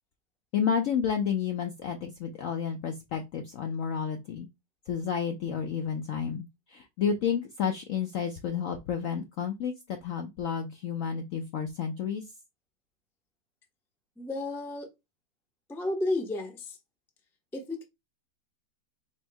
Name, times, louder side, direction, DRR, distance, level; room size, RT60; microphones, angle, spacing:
voice 1, 0.5-4.5 4.9-12.2, left 7 dB, 70° left, 0.8 m, -31 dB
voice 2, 14.2-14.9 15.7-16.8 17.5-17.8, left 2 dB, 5° left, 0.4 m, -32 dB
4.4 x 2.1 x 4.5 m
omnidirectional pair, 2.0 m